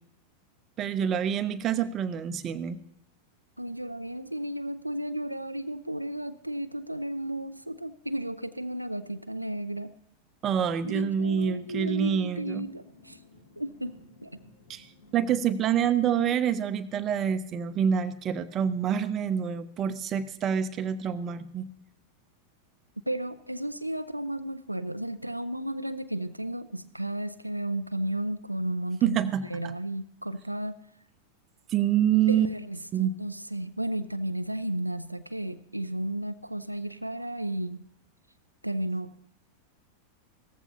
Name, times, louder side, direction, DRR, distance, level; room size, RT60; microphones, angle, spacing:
voice 1, 0.8-2.8 10.4-12.7 14.7-14.9 15.1-21.7 29.0-29.7 31.7-32.5 32.9-33.1, right 8 dB, 30° right, 10 dB, 0.8 m, -27 dB
voice 2, 3.6-9.9 10.8-13.2 13.6-14.0 14.2-14.4 23.1-30.8 32.3-37.9 38.6-39.1, right 1 dB, 85° right, 10 dB, 0.5 m, -33 dB
sound 1, 10.6-16.0, left 2 dB, 70° left, 3.1 m, -56 dB
17.0 x 14.5 x 2.8 m, 0.76 s
figure-of-eight pair, 90°, 0 cm